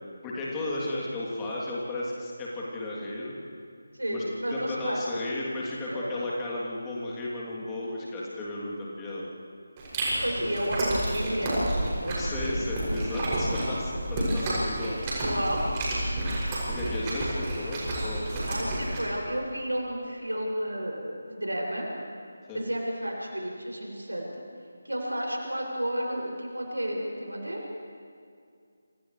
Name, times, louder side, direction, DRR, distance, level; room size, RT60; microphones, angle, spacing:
voice 1, 0.2-3.4 4.1-4.2 4.5-9.3 12.2-15.0 16.7-18.5 22.5-22.6, left 1 dB, 15° left, -6 dB, 3.2 m, -34 dB
voice 2, 3.9-5.2 5.9-6.1 10.2-12.6 15.2-15.6 18.4-21.9 22.5-24.4 24.8-27.6, equal, 80° right, -2 dB, 6.9 m, -32 dB
Chewing mastication, 9.8-19.0, right 1 dB, 20° right, 7.0 m, -30 dB
29.0 x 26.5 x 3.4 m, 2.3 s
figure-of-eight pair, 155°, 0 cm